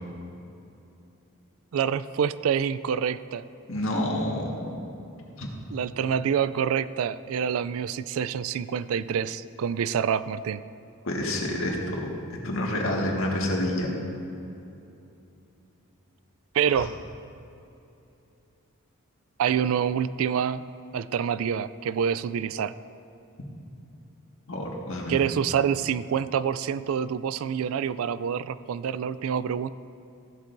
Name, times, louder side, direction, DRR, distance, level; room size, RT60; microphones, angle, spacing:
voice 1, 1.7-3.4 5.7-10.6 16.5-16.9 19.4-20.6 20.9-22.7 25.1-29.7, right 7 dB, 70° right, 16 dB, 0.3 m, -27 dB
voice 2, 3.7-4.7 5.4-5.5 11.1-12.0 12.3-13.9 16.8-16.9 24.5-25.2, left 1 dB, 65° left, -1 dB, 1.8 m, -28 dB
15.5 x 11.5 x 2.6 m, 2.8 s
head